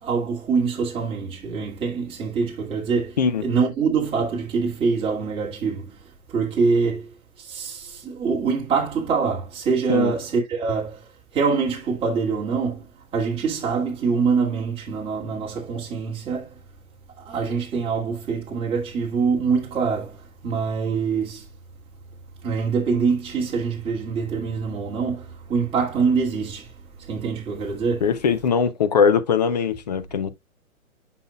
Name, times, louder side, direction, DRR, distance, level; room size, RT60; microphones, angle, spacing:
voice 1, 0.0-11.1 11.3-16.6 17.2-21.5 22.4-28.0, right 5 dB, 10° right, 1.9 m, -25 dB
voice 2, 28.0-30.3, left 6 dB, 30° left, 0.5 m, -21 dB
7.7 x 5.8 x 2.2 m
hypercardioid pair, 150°, 43 cm